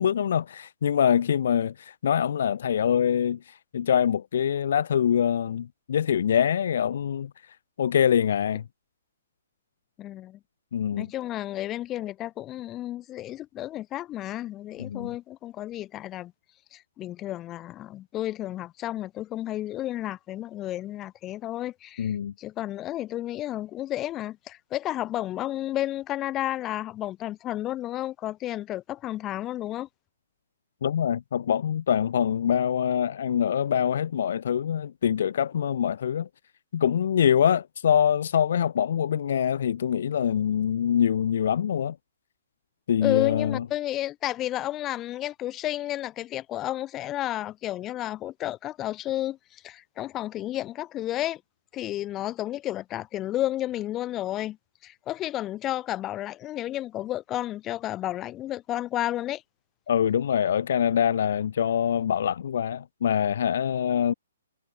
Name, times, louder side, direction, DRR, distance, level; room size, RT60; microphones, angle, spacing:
voice 1, 0.0-3.4 3.7-7.3 7.8-8.6 10.7-11.1 14.8-15.1 22.0-22.3 30.8-36.3 36.7-41.9 42.9-43.6 59.9-64.1, left 8 dB, 55° left, 1.7 m, -24 dB
voice 2, 10.0-10.4 10.9-16.3 16.7-29.9 43.0-51.4 51.7-54.6 54.8-59.4, left 14 dB, 20° left, 3.1 m, -32 dB
figure-of-eight pair, 125°, 0 cm